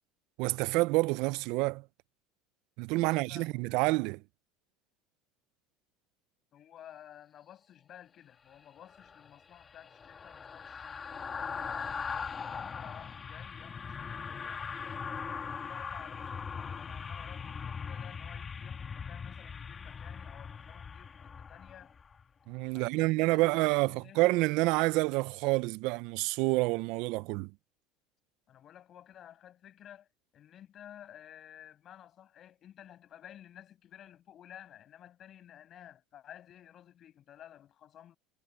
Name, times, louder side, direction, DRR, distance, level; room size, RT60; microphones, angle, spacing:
voice 1, 0.4-1.8 2.8-4.2 22.5-27.5, right 22 dB, 70° right, 0.6 m, -28 dB
voice 2, 3.1-3.8 6.5-11.4 11.8-15.1 15.5-21.9 22.7-24.2 28.5-30.1 30.3-38.2, left 10 dB, 45° left, 6.6 m, -54 dB
sound 1, 8.9-22.2 22.6-22.8, left 6 dB, 30° left, 2.5 m, -40 dB
supercardioid pair, 95°, 0 cm